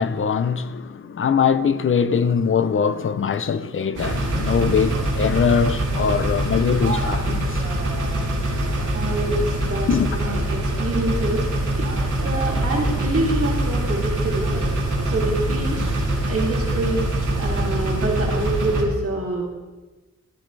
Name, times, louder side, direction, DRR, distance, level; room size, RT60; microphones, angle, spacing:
voice 1, 0.0-7.6 9.9-10.1, left 6 dB, 45° left, 0.6 m, -22 dB
sound 1, 4.0-18.8, right 1 dB, 80° right, 2.9 m, -24 dB
voice 2, 8.9-11.5 11.8-11.9 12.2-14.7 15.1-15.8 16.3-17.1 17.4-19.5, right 2 dB, 50° right, 2.8 m, -26 dB
15.0 x 14.0 x 3.3 m
wide cardioid pair, 150°, 30 cm